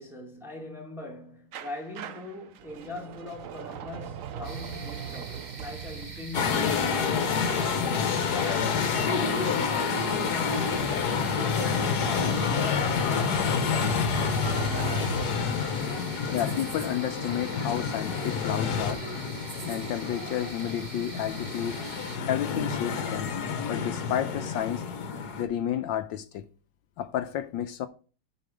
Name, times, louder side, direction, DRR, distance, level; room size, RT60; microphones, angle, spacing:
voice 1, 0.0-8.1 8.3-11.0 11.3-13.1, left 2 dB, ahead, 1.6 m, -41 dB
sound 1, 1.5-8.3 13.8-16.0, right 9 dB, 80° right, 0.7 m, -41 dB
sound 2, 4.4-22.2, right 3 dB, 35° right, 0.7 m, -43 dB
sound 3, 6.3-25.4, left 5 dB, 60° left, 1.4 m, -28 dB
voice 2, 16.3-19.0 19.6-21.8 22.3-23.4 23.7-24.8 25.4-26.4 27.0-27.9, left 10 dB, 75° left, 1.3 m, -31 dB
7.8 x 5.6 x 5.0 m
omnidirectional pair, 2.2 m